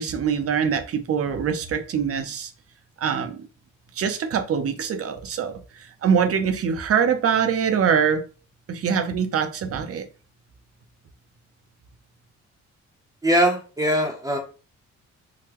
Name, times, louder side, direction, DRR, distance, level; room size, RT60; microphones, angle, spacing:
voice 1, 0.0-2.5 3.0-3.4 4.0-5.5 6.0-8.2 8.7-10.1, right 7 dB, 50° right, 7 dB, 0.7 m, -23 dB
voice 2, 13.2-14.4, equal, 10° right, -1 dB, 0.7 m, -21 dB
3.9 x 2.1 x 2.9 m, 0.35 s
cardioid pair, 90°, 30 cm